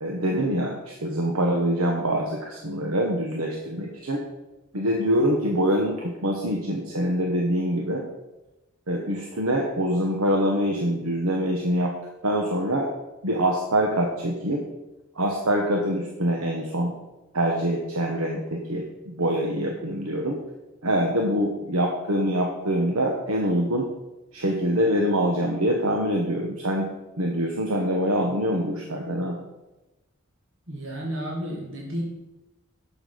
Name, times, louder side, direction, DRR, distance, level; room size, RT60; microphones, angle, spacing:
voice 1, 0.0-4.2 4.7-8.0 8.9-11.9 12.2-12.9 13.2-14.6 15.1-16.9 17.3-20.4 20.8-23.9 24.3-26.9 27.2-29.4, equal, 90° right, 0 dB, 1.3 m, -25 dB
voice 2, 30.7-32.0, equal, 65° right, -3 dB, 2.4 m, -32 dB
10.5 x 7.1 x 5.2 m, 1.0 s
head